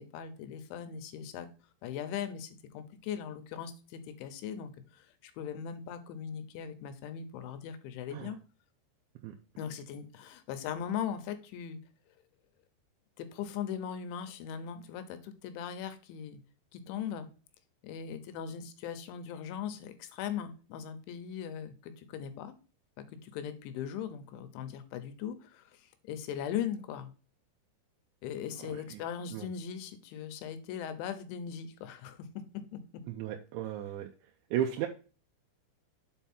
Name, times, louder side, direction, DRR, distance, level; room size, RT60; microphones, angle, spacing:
voice 1, 0.0-1.5 1.8-8.4 9.6-11.8 13.2-16.4 16.7-17.3 17.8-22.5 23.2-27.1 28.2-32.3 32.5-32.8, left 8 dB, 90° left, 9 dB, 3.3 m, -39 dB
voice 2, 28.7-29.0 29.3-29.5 33.1-34.1 34.5-34.9, right 10 dB, 85° right, 2 dB, 3.0 m, -34 dB
7.5 x 4.7 x 4.3 m, 0.36 s
omnidirectional pair, 5.2 m